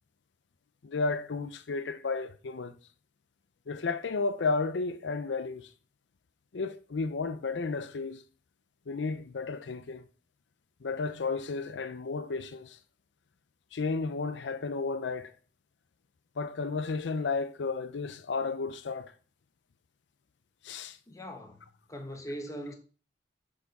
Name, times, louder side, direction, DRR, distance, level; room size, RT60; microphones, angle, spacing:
voice 1, 0.8-2.7 3.7-5.7 6.5-8.2 8.9-10.0 10.8-12.8 13.7-15.3 16.4-19.1 20.6-21.0, left 4 dB, 70° left, 0.5 m, -33 dB
voice 2, 21.1-22.7, equal, 20° left, 1.0 m, -41 dB
6.4 x 5.8 x 4.1 m
head